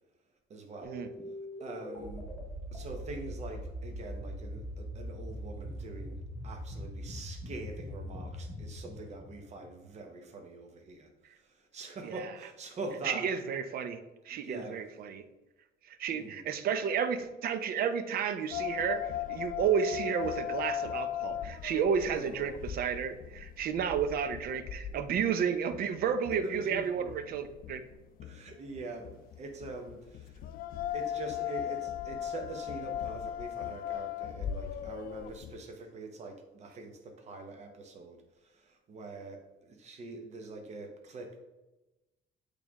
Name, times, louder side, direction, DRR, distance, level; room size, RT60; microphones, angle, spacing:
voice 1, 0.5-1.0 1.6-2.3 2.7-13.4 14.3-14.8 16.1-16.5 22.1-22.5 26.4-27.1 28.2-30.4 30.9-41.4, right 2 dB, 40° right, 4 dB, 1.0 m, -44 dB
sound 1, 0.8-10.2, equal, 15° left, 1.7 m, -42 dB
voice 2, 13.0-14.0 14.3-15.2 15.9-27.8, right 7 dB, 60° right, 11 dB, 0.6 m, -32 dB
sound 2, 18.5-35.6, left 10 dB, 60° left, 0.4 m, -38 dB
8.2 x 3.3 x 3.6 m, 1.0 s
cardioid pair, 110°, 17 cm